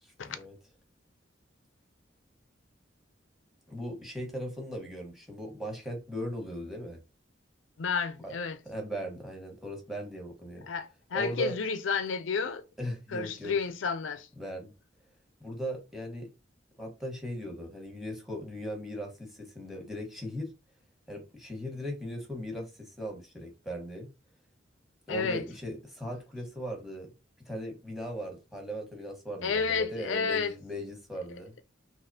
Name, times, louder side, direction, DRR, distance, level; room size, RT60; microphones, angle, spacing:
voice 1, 0.0-0.5 3.7-7.0 8.2-8.3 8.6-10.7 11.1-11.5 12.8-13.5 14.4-14.7 15.4-16.3 16.8-20.5 21.1-24.1 25.1-27.1 27.5-31.5, equal, ahead, 1.2 m, -38 dB
voice 2, 7.8-8.6 10.7-12.6 13.1-14.3 25.1-25.4 29.4-30.5, left 5 dB, 90° left, 0.5 m, -31 dB
4.0 x 2.8 x 2.7 m
head